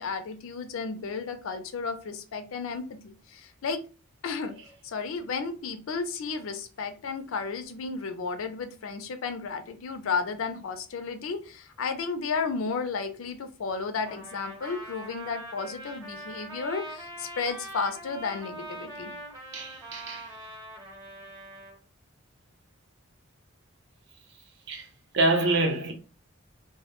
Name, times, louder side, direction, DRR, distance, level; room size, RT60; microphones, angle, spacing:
voice 1, 0.0-3.8 4.2-4.5 4.8-19.1, left 5 dB, 80° left, 0.4 m, -33 dB
Trumpet, 14.0-21.8, right 1 dB, 15° right, 0.8 m, -42 dB
voice 2, 19.5-20.3 24.7-24.9 25.1-25.9, right 2 dB, 55° right, 0.6 m, -26 dB
2.2 x 2.0 x 2.9 m
head